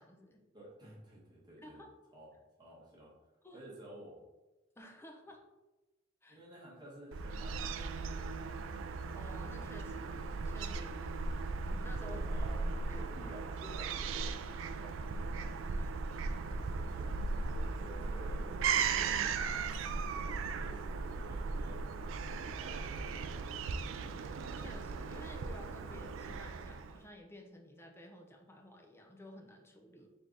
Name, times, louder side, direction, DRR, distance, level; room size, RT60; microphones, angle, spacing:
voice 1, 0.0-0.4 1.6-1.9 3.4-3.6 4.8-5.4 6.2-6.4 9.1-11.1 11.7-12.2 12.7-13.4 15.8-15.9 24.0-30.1, left 1 dB, 15° left, 2 dB, 0.5 m, -53 dB
voice 2, 0.5-1.9 2.1-2.3 2.6-3.1 3.5-4.2 6.3-8.3 12.0-12.6 12.8-14.4 14.6-15.0 16.9-17.1 17.5-19.5 20.1-21.8 22.3-22.8, right 1 dB, 20° right, -6 dB, 1.5 m, -53 dB
Fowl / Gull seagull, 7.1-27.0, right 4 dB, 75° right, 0.3 m, -37 dB
3.5 x 3.4 x 3.9 m, 1.1 s
head